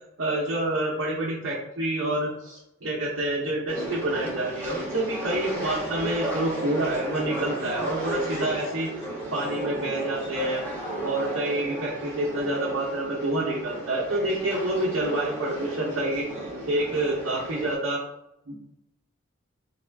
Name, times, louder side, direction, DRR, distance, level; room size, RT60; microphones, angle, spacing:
voice 1, 0.2-8.9 9.3-10.6 11.0-18.0 18.5-18.6, right 1 dB, 75° right, -5 dB, 0.8 m, -28 dB
Laughter, 2.1-2.5 3.3-3.4 3.9-4.2 4.4-5.2 5.4-10.5, left 1 dB, 55° left, 0.8 m, -44 dB
sound 1, 3.7-17.8, right 1 dB, 10° left, 1.1 m, -34 dB
3.5 x 2.4 x 3.4 m, 0.81 s
head